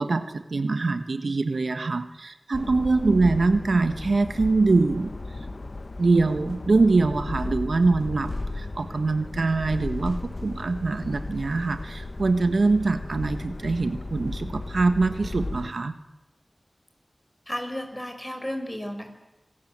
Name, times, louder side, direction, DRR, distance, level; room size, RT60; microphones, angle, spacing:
voice 1, 0.0-5.1 6.0-15.9, right 3 dB, 85° right, 9 dB, 1.4 m, -23 dB
sound 1, 2.5-15.7, left 2 dB, 65° left, 1.3 m, -35 dB
voice 2, 17.5-19.1, equal, 15° left, 6 dB, 5.5 m, -33 dB
26.0 x 18.5 x 8.8 m, 1.0 s
wide cardioid pair, 45°, 0 cm